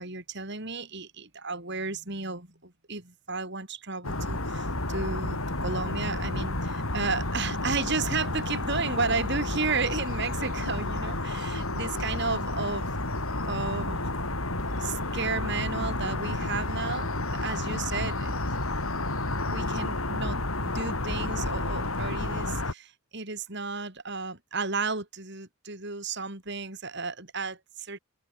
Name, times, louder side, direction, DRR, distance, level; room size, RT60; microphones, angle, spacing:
voice 1, 0.0-12.9 13.4-14.1 14.8-18.3 19.4-28.0, right 4 dB, 55° right, 6.0 m, -33 dB
sound 1, 4.0-22.7, left 2 dB, 85° left, 7.9 m, -31 dB
open air
head